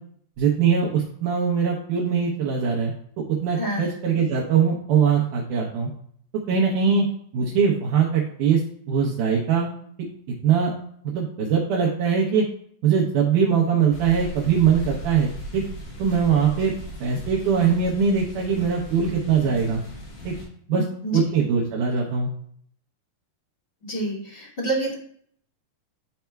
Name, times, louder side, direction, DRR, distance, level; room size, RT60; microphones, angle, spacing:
voice 1, 0.4-5.9 6.5-7.1 7.3-8.6 8.9-9.7 10.4-10.7 11.0-12.5 12.8-15.6 16.0-16.7 17.0-19.8 20.2-20.3 20.7-20.9 21.1-22.3, right 6 dB, 75° right, -3 dB, 1.9 m, -21 dB
sound 1, 13.9-20.5, equal, 85° left, 4.8 m, -38 dB
voice 2, 23.9-24.9, right 2 dB, 35° left, -6 dB, 0.8 m, -27 dB
11.5 x 4.2 x 2.3 m, 0.63 s
omnidirectional pair, 4.7 m